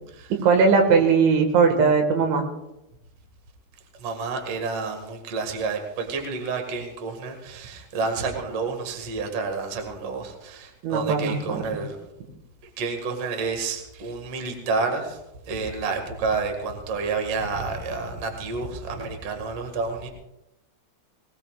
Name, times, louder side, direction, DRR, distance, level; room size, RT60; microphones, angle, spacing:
voice 1, 0.4-2.4 10.8-11.8, right 5 dB, 80° right, 4 dB, 4.1 m, -19 dB
voice 2, 4.0-12.0 12.8-15.2 15.5-20.1, right 4 dB, 45° right, 4 dB, 2.1 m, -29 dB
21.0 x 19.0 x 2.5 m, 0.89 s
omnidirectional pair, 5.3 m